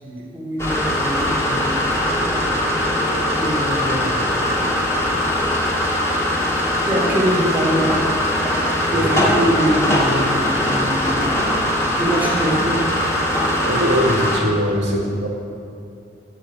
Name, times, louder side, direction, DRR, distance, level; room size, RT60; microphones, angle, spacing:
voice 1, 0.0-2.0 3.3-4.9 6.8-7.9 8.9-11.7 12.0-12.8 14.7-14.8, right 1 dB, 10° right, -6 dB, 3.8 m, -24 dB
sound 1, 0.6-14.4, left 1 dB, 15° left, 2.9 m, -21 dB
voice 2, 8.8-9.3 13.7-15.3, equal, 80° right, -1 dB, 2.3 m, -21 dB
15.5 x 7.5 x 9.4 m, 2.6 s
head